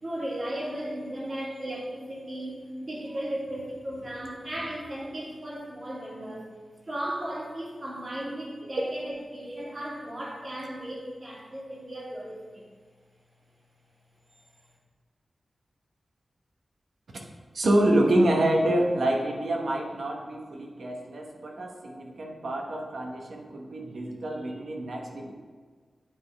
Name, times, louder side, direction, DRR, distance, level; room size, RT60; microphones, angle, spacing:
voice 1, 0.0-6.5 6.9-12.7 14.4-14.5, right 1 dB, 45° right, -5 dB, 1.9 m, -36 dB
voice 2, 17.5-25.3, right 1 dB, 75° right, 0 dB, 1.0 m, -27 dB
8.7 x 3.8 x 3.4 m, 1.5 s
wide cardioid pair, 95°, 0 cm